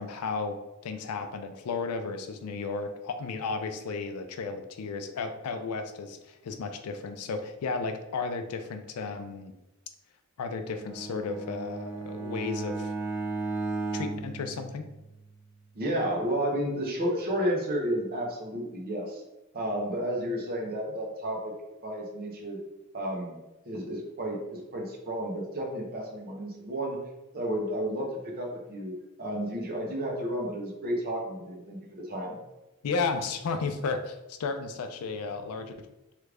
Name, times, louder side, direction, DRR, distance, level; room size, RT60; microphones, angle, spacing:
voice 1, 0.0-9.5 10.4-12.9 13.9-14.9 32.8-35.7, left 4 dB, 80° left, 8 dB, 0.4 m, -33 dB
Bowed string instrument, 10.7-15.3, right 3 dB, 10° right, 0.3 m, -35 dB
voice 2, 15.7-19.2 19.5-21.5 21.8-22.6 22.9-23.4 23.6-27.0 27.3-28.1 28.4-32.4, equal, 45° right, 0 dB, 0.8 m, -32 dB
3.1 x 2.4 x 3.3 m, 0.99 s
head